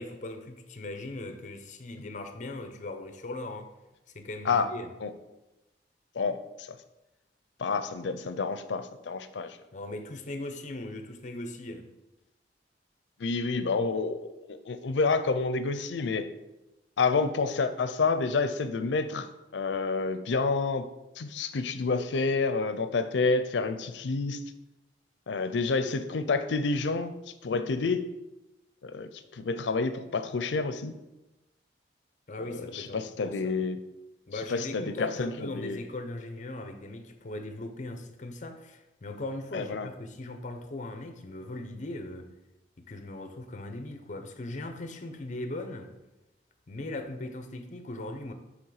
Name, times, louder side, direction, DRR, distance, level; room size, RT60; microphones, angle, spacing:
voice 1, 0.0-3.7 4.1-4.9 9.7-11.9 32.3-33.6 34.3-42.3 42.8-45.9 46.7-48.3, left 2 dB, 45° left, 7 dB, 0.6 m, -39 dB
voice 2, 6.1-6.8 7.6-9.6 13.2-16.3 17.0-20.9 21.2-24.4 25.3-28.1 28.8-31.0 32.4-33.8 34.5-35.8 39.5-39.9, left 4 dB, 85° left, 10 dB, 0.5 m, -29 dB
7.2 x 3.4 x 4.8 m, 0.98 s
head